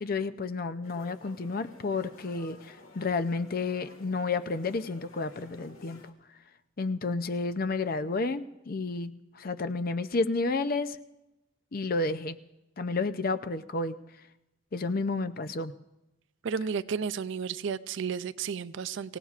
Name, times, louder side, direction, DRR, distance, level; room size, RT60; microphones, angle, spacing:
voice 1, 0.0-6.1 6.8-11.0 11.7-12.4 12.8-14.0 14.7-15.7, left 3 dB, 45° left, 11 dB, 0.5 m, -31 dB
sound 1, 0.8-6.1, left 3 dB, 85° left, 1.8 m, -53 dB
voice 2, 16.4-19.2, right 6 dB, 60° right, 15 dB, 0.4 m, -32 dB
26.0 x 17.0 x 2.5 m, 0.92 s
head